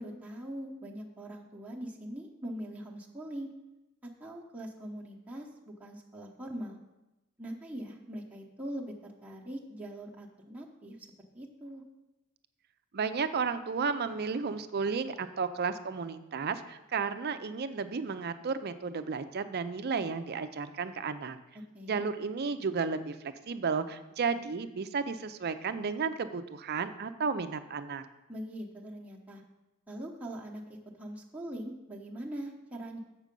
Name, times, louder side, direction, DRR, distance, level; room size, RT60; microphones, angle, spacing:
voice 1, 0.0-3.5 4.0-5.5 5.8-6.8 7.4-11.0 11.3-11.8 21.7-22.0 28.3-29.4 29.9-30.6 31.0-33.0, right 1 dB, 5° right, -4 dB, 0.9 m, -42 dB
voice 2, 12.9-21.4 21.8-28.0, right 5 dB, 45° right, 10 dB, 0.5 m, -33 dB
7.5 x 6.2 x 5.3 m, 1.0 s
head